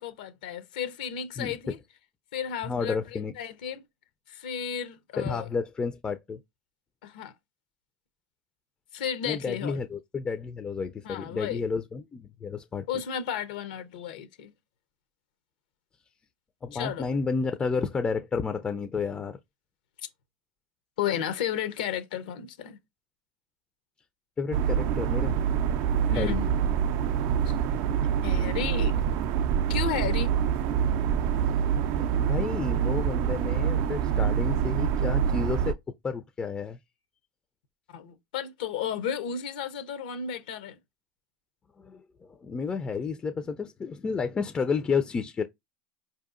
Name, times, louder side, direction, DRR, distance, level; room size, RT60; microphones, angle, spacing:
voice 1, 0.0-1.8 2.3-3.8 4.3-5.5 7.0-7.3 8.9-9.8 11.0-11.6 12.9-14.5 16.7-17.1 21.0-22.8 26.1-26.5 27.5-27.6 28.2-29.0 29.7-30.3 37.9-40.8, left 8 dB, 80° left, 0.6 m, -33 dB
voice 2, 2.6-3.3 5.2-6.4 9.3-12.9 16.6-19.4 24.4-25.4 26.2-26.4 31.4-31.7 32.0-35.8 36.0-36.8 41.8-45.4, left 5 dB, 20° left, 0.3 m, -31 dB
sound 1, 24.5-35.7, right 8 dB, 60° right, 0.3 m, -26 dB
4.6 x 2.7 x 2.4 m
hypercardioid pair, 100°, 4 cm